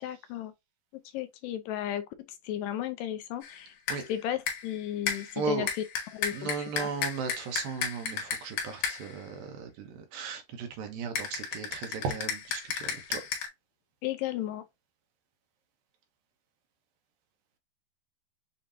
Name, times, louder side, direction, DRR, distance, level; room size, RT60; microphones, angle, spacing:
voice 1, 0.0-0.5 1.1-2.0 2.4-5.7 6.1-6.5 6.8-6.9 14.0-14.6, left 12 dB, 80° left, 2.1 m, -34 dB
sound 1, 3.4-3.6 3.9-4.1 4.5-4.8 5.1-9.2 11.2-13.5, left 7 dB, 65° left, 2.7 m, -34 dB
voice 2, 5.4-5.7 6.3-13.2, right 5 dB, 85° right, 2.8 m, -36 dB
7.1 x 2.9 x 2.5 m
omnidirectional pair, 4.1 m